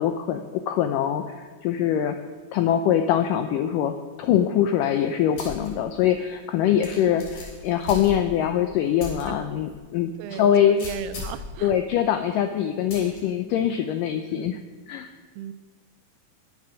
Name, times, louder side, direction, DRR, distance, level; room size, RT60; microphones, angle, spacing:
voice 1, 0.0-2.2 2.5-10.8 11.6-14.6 14.9-15.1, left 10 dB, 80° left, 7 dB, 2.0 m, -23 dB
sound 1, 5.4-5.7 6.1-6.2 6.8-8.5 9.0-9.2 9.7-9.8 10.8-11.5 12.9-13.2, left 3 dB, 55° left, 4.7 m, -37 dB
voice 2, 7.0-7.3 9.3-9.5 10.2-11.8 14.3-14.6 15.4-15.5, right 11 dB, 90° right, 12 dB, 2.7 m, -38 dB
21.5 x 7.3 x 6.3 m, 1.4 s
omnidirectional pair, 4.5 m